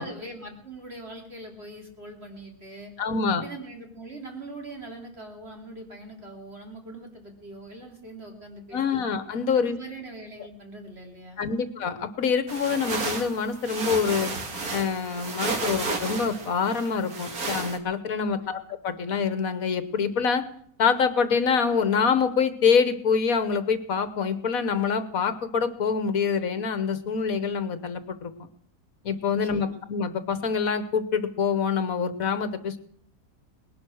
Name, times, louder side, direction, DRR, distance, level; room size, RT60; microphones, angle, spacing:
voice 1, 0.0-2.9 3.3-9.0 9.5-11.5 18.2-18.5 29.2-29.8, right 2 dB, 45° right, 2 dB, 3.2 m, -42 dB
voice 2, 3.0-3.4 8.7-9.8 11.4-14.3 14.7-20.4 20.8-28.5 29.0-32.8, left 6 dB, 70° left, 12 dB, 1.5 m, -25 dB
sound 1, 12.5-17.8, right 3 dB, 70° right, 2.5 m, -32 dB
19.5 x 11.5 x 6.3 m, 0.63 s
omnidirectional pair, 1.6 m